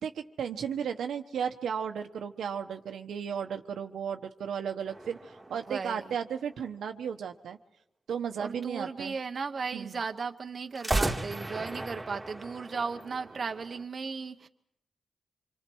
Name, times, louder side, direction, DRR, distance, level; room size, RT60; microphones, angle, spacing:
voice 1, 0.0-7.6 8.1-9.2 9.7-10.0, right 7 dB, 85° right, 6 dB, 1.2 m, -34 dB
sound 1, 4.9-6.7 10.7-13.8, right 2 dB, 15° right, 2.0 m, -35 dB
voice 2, 5.7-6.0 8.4-14.5, right 5 dB, 50° right, 6 dB, 1.0 m, -36 dB
26.5 x 25.0 x 4.7 m, 0.75 s
cardioid pair, 90°, 0 cm